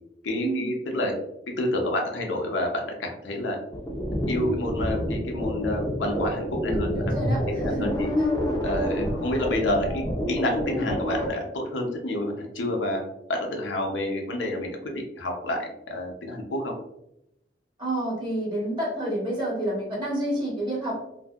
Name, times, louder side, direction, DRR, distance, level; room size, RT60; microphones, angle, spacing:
voice 1, 0.2-1.1 1.6-3.6 4.3-7.0 7.5-8.1 8.6-10.0 10.3-13.0 13.3-16.7, left 1 dB, 90° left, 1 dB, 0.6 m, -29 dB
sound 1, 3.7-11.3, equal, 20° left, 0.5 m, -28 dB
voice 2, 6.6-7.9 8.2-8.3 17.8-21.0, right 1 dB, 25° right, -5 dB, 1.1 m, -29 dB
2.6 x 2.6 x 2.3 m, 0.82 s
head